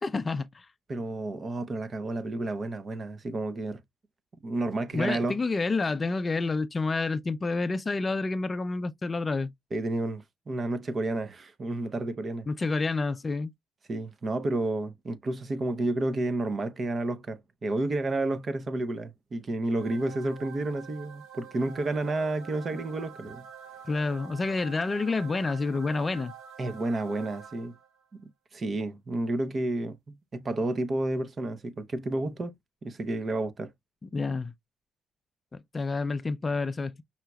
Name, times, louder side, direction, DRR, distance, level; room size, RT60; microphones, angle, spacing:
voice 1, 0.0-0.7 4.9-9.5 12.5-13.5 23.9-26.3 34.0-34.5 35.5-37.0, left 3 dB, 30° left, 0.5 m, -29 dB
voice 2, 0.9-3.8 4.4-5.4 9.7-12.5 13.9-23.5 26.6-27.7 28.5-32.5 32.8-33.7, right 2 dB, 40° right, 0.7 m, -31 dB
sound 1, 19.8-28.0, right 8 dB, 90° right, 1.2 m, -47 dB
5.6 x 3.0 x 2.3 m
cardioid pair, 90°, 0 cm